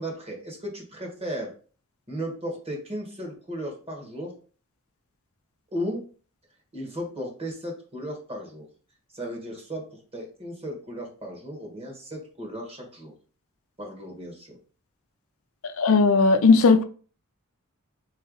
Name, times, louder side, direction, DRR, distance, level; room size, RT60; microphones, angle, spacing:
voice 1, 0.0-1.5 2.1-4.3 5.7-6.0 6.7-8.6 9.1-9.8 10.1-13.1 13.8-14.5, equal, 30° right, 1.5 m, -35 dB
voice 2, 15.6-16.8, left 4 dB, 70° left, 0.5 m, -17 dB
4.0 x 3.3 x 3.9 m
head